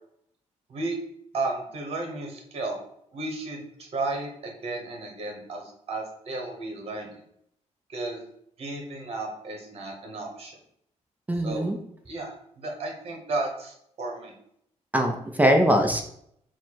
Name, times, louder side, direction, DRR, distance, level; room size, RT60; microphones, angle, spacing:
voice 1, 1.3-2.8 3.1-7.1 7.9-8.2 8.6-10.5 11.4-11.7 12.1-14.3, right 2 dB, 50° right, 2 dB, 1.0 m, -33 dB
voice 2, 11.3-11.8 14.9-16.0, equal, 10° right, 3 dB, 0.4 m, -22 dB
4.3 x 2.1 x 4.5 m, 0.71 s
cardioid pair, 150°, 12 cm